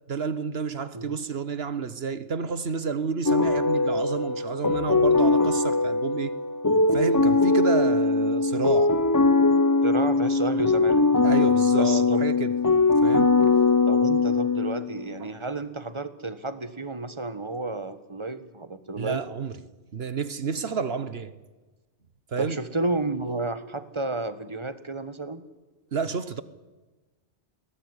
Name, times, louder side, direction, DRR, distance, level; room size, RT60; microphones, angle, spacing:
voice 1, 0.1-6.3 6.9-9.0 11.2-12.5 13.0-13.4 15.2-15.3 19.0-19.6 19.9-21.3 22.3-22.6 25.9-26.4, right 5 dB, 65° right, 1.4 m, -30 dB
sound 1, 3.3-15.0, left 3 dB, 20° left, 0.7 m, -21 dB
voice 2, 9.8-11.1 11.8-12.2 13.9-19.2 22.4-25.4, right 2 dB, 25° right, 1.5 m, -31 dB
22.0 x 18.0 x 9.8 m
omnidirectional pair, 1.1 m